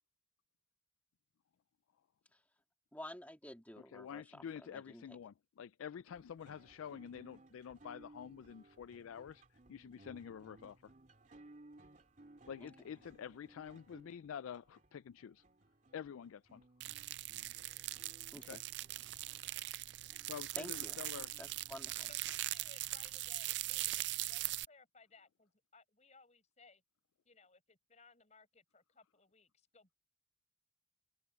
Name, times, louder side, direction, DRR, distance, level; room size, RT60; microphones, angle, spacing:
voice 1, 2.9-5.2 12.6-12.7 18.3-18.6 19.2-19.3 20.6-21.0 21.4-22.1, left 1 dB, 10° left, 2.0 m, -51 dB
voice 2, 3.9-10.9 12.5-15.4 15.9-16.6 18.4-18.6 20.2-21.3, left 8 dB, 90° left, 0.4 m, -48 dB
sound 1, 6.1-22.6, right 2 dB, 40° right, 2.8 m, -62 dB
sound 2, 16.8-24.7, right 17 dB, 55° right, 0.3 m, -41 dB
voice 3, 22.0-26.8 27.2-30.0, left 4 dB, 35° left, 5.6 m, -63 dB
open air
head